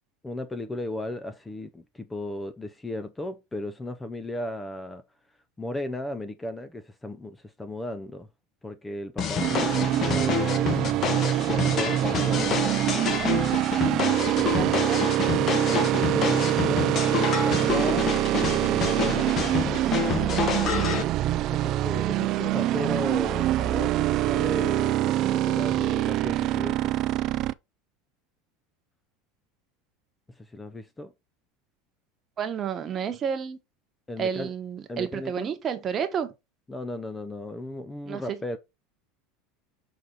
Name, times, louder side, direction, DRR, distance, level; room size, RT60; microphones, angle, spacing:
voice 1, 0.2-5.0 5.6-8.3 8.6-10.9 11.4-13.1 14.4-14.9 15.7-20.2 21.5-26.9 30.4-31.1 34.1-34.5 34.9-35.5 36.7-38.6, left 1 dB, 10° left, 0.5 m, -35 dB
sound 1, 9.2-21.0, left 6 dB, 35° left, 1.0 m, -28 dB
sound 2, 9.4-27.5, right 14 dB, 45° right, 0.4 m, -25 dB
voice 2, 14.5-15.0 25.0-25.4 32.4-33.6 34.2-36.3 38.1-38.4, right 7 dB, 30° right, 1.1 m, -31 dB
6.4 x 4.1 x 4.0 m
supercardioid pair, 125°, 0 cm